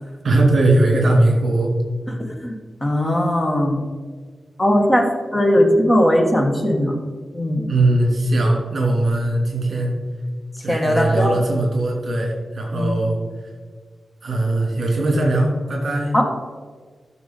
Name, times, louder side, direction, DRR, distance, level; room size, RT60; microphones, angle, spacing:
voice 1, 0.2-1.7 7.7-9.9 10.6-13.2 14.2-16.1, right 2 dB, 55° right, -1 dB, 3.0 m, -19 dB
voice 2, 2.1-3.8 4.6-7.0 7.3-7.7 10.7-11.4 12.7-12.9 16.1-16.3, equal, 20° left, 2 dB, 1.4 m, -19 dB
13.5 x 6.7 x 4.1 m, 1.5 s
wide cardioid pair, 150°, 0 cm